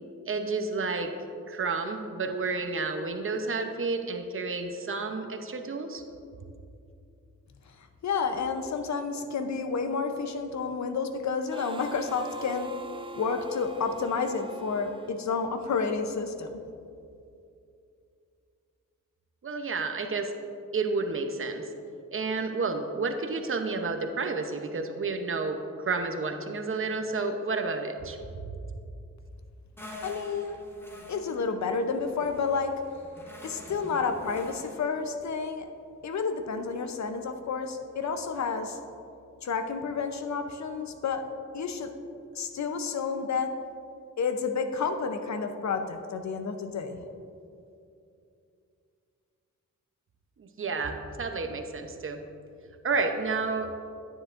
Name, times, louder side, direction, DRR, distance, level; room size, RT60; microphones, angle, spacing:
voice 1, 0.3-1.1 1.5-6.0 19.4-20.3 20.7-21.7 22.1-28.2 50.4-52.2 52.8-53.7, right 4 dB, 40° right, 6 dB, 0.8 m, -30 dB
voice 2, 7.8-12.7 13.2-16.6 30.0-30.6 31.1-32.7 33.4-35.6 36.0-38.8 39.4-41.2 41.5-41.9 42.3-43.5 44.2-47.0, left 5 dB, 60° left, 7 dB, 0.7 m, -30 dB
Harmonica, 11.5-16.0, right 3 dB, 15° right, 0.4 m, -44 dB
sound 1, 29.8-34.9, left 1 dB, 5° left, 1.1 m, -46 dB
10.0 x 9.7 x 2.5 m, 2.6 s
cardioid pair, 95°, 32 cm